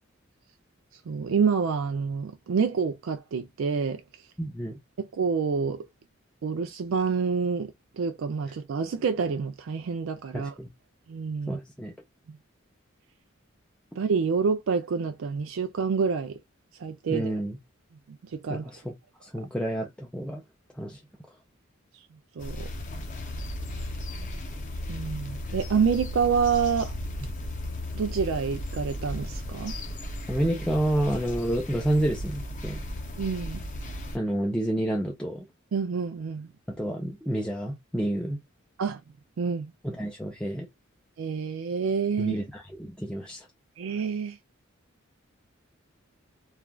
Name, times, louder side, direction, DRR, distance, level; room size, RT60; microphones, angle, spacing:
voice 1, 1.1-4.0 5.0-5.8 6.4-10.5 11.1-11.6 14.0-16.4 16.8-17.3 18.3-18.6 22.4-22.7 24.9-27.0 27.9-29.7 33.2-33.6 35.7-36.5 38.8-39.0 39.4-39.7 41.2-42.4 43.8-44.4, right 5 dB, 70° right, 0.4 m, -27 dB
voice 2, 4.4-4.8 10.3-10.7 11.5-11.9 17.1-17.6 18.5-18.9 19.2-20.4 20.8-21.0 30.3-32.8 34.1-35.5 36.7-38.4 39.8-40.7 42.2-43.5, right 1 dB, 5° left, 0.4 m, -29 dB
sound 1, 22.4-34.2, left 1 dB, 40° left, 0.7 m, -35 dB
3.2 x 2.4 x 2.2 m
head